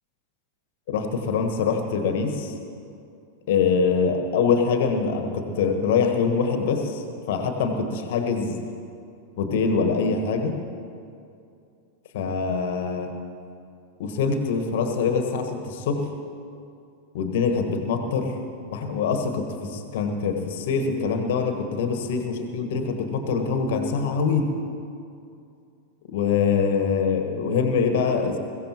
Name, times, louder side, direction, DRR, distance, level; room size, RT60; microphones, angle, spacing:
voice 1, 0.9-2.5 3.5-8.6 9.4-10.6 12.1-13.2 14.0-16.1 17.1-18.4 18.7-24.5 26.1-28.4, left 5 dB, 55° left, 6 dB, 1.5 m, -24 dB
22.0 x 15.5 x 3.0 m, 2.5 s
figure-of-eight pair, 90°, 0 cm